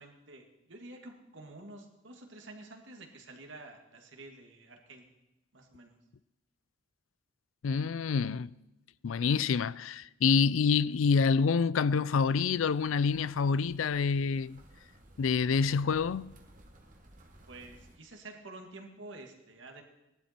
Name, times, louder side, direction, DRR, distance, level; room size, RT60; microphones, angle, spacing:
voice 1, 0.0-5.1 5.5-6.0 17.5-19.8, right 2 dB, 65° right, 2.2 m, -49 dB
voice 2, 7.6-8.5 9.0-14.6 15.2-16.4, left 5 dB, 85° left, 0.4 m, -27 dB
sound 1, 11.9-18.0, right 1 dB, 40° right, 1.7 m, -57 dB
18.0 x 11.5 x 4.4 m
head